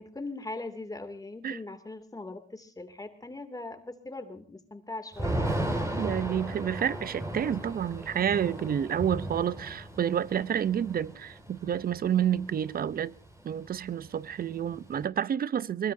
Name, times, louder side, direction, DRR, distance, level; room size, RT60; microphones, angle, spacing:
voice 1, 0.0-5.6, left 2 dB, 20° left, 2.6 m, -40 dB
Thunder / Rain, 5.1-13.0 13.3-13.4 13.7-15.0, right 1 dB, 15° right, 5.0 m, -35 dB
voice 2, 6.0-13.1 13.4-15.9, right 9 dB, 50° right, 0.7 m, -29 dB
23.0 x 21.0 x 2.7 m
cardioid pair, 90°, 20 cm